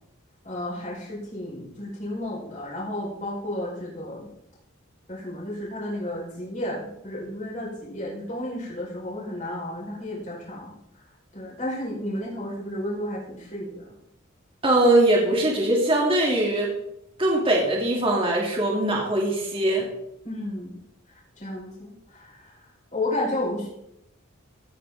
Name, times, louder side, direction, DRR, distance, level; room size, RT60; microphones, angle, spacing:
voice 1, 0.4-4.3 5.1-10.8 11.3-13.9 20.2-20.8 21.4-22.5 22.9-23.7, left 1 dB, 35° left, -4 dB, 4.7 m, -32 dB
voice 2, 14.6-16.7 17.2-19.9, right 1 dB, 25° right, -3 dB, 2.8 m, -21 dB
16.5 x 9.2 x 3.8 m, 0.80 s
head